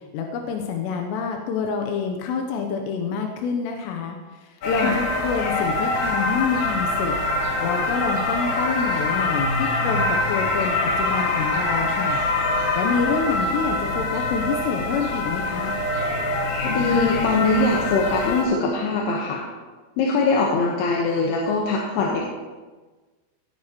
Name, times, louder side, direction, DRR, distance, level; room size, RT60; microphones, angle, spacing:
voice 1, 0.1-7.2 7.6-12.2 12.7-15.8, left 6 dB, 90° left, 3 dB, 3.0 m, -27 dB
sound 1, 4.6-18.5, left 2 dB, 55° left, 2.5 m, -24 dB
voice 2, 16.6-19.5 20.0-22.2, left 3 dB, 70° left, -2 dB, 3.1 m, -22 dB
18.0 x 9.7 x 3.0 m, 1.3 s
omnidirectional pair, 4.9 m